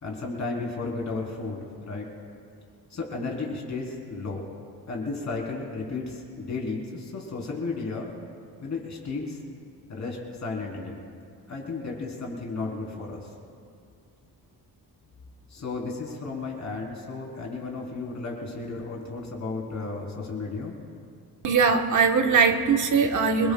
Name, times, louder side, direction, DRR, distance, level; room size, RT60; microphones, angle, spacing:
voice 1, 0.0-2.1 2.9-4.4 4.9-8.1 8.6-9.4 9.9-11.0 11.5-13.3 15.5-20.7, left 3 dB, 45° left, -2 dB, 4.0 m, -33 dB
voice 2, 21.4-23.5, right 5 dB, 55° right, 3 dB, 1.4 m, -21 dB
27.0 x 22.0 x 2.4 m, 2.3 s
wide cardioid pair, 150°, 38 cm